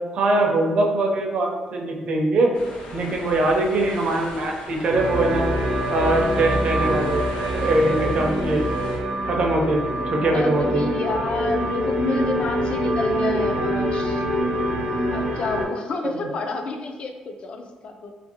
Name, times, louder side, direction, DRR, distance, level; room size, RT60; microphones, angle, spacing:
voice 1, 0.1-2.5 2.9-5.5 5.9-7.2 7.5-8.7 9.2-10.9 16.0-16.3, right 2 dB, 50° right, 1 dB, 0.4 m, -22 dB
sound 1, 2.5-9.0, left 1 dB, 80° left, 0.7 m, -39 dB
sound 2, 4.9-15.6, equal, 85° right, 0.7 m, -25 dB
voice 2, 8.0-8.7 10.3-14.2 15.1-18.1, left 3 dB, 45° left, 5 dB, 0.3 m, -29 dB
2.8 x 2.5 x 2.7 m, 1.3 s
cardioid pair, 135°, 2 cm